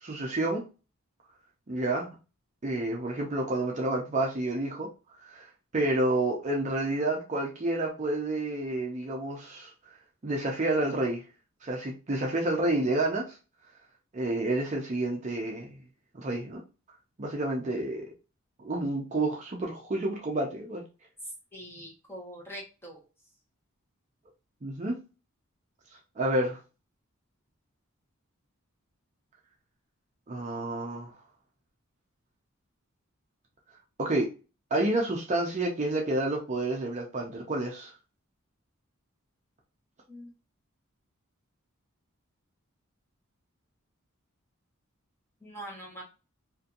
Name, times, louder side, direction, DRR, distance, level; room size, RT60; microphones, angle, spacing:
voice 1, 0.0-0.6 1.7-2.1 2.6-4.9 5.3-5.5 5.7-9.7 10.2-11.2 11.6-13.4 14.1-15.7 16.1-16.6 17.2-18.1 18.6-20.8 24.6-25.0 26.2-26.6 30.3-31.1 34.0-34.3 34.7-37.9, right 2 dB, 35° right, 0 dB, 0.5 m, -29 dB
voice 2, 21.5-23.0 40.1-40.3 45.4-46.0, equal, 10° left, -2 dB, 1.0 m, -43 dB
2.7 x 2.6 x 2.5 m, 0.31 s
head